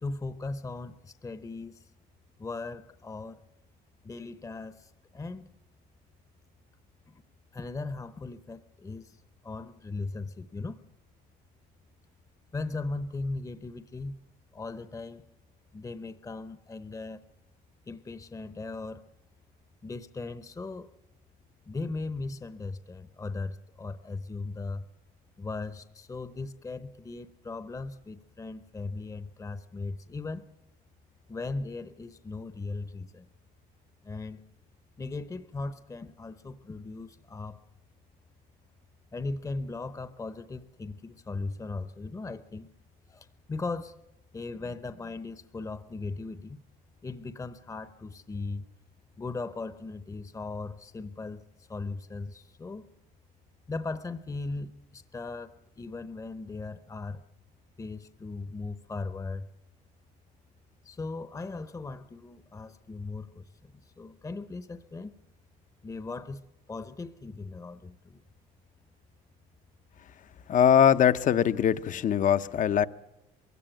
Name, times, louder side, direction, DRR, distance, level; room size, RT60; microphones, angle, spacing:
voice 1, 0.0-1.8 2.4-3.4 4.0-5.5 7.1-7.2 7.5-9.2 9.4-10.8 12.5-14.2 14.5-15.3 15.7-17.2 17.9-19.0 19.8-20.9 21.7-24.8 25.4-30.5 31.3-33.3 34.0-34.5 35.0-37.6 39.1-42.7 43.1-43.9 44.3-46.6 47.0-48.7 49.2-51.4 51.7-52.9 53.7-57.2 57.8-59.5 60.8-65.1 65.8-66.4 66.7-68.2, left 3 dB, 20° left, 0.9 m, -38 dB
voice 2, 70.5-72.9, left 9 dB, 50° left, 0.8 m, -22 dB
22.5 x 16.5 x 9.0 m
cardioid pair, 110°, 17 cm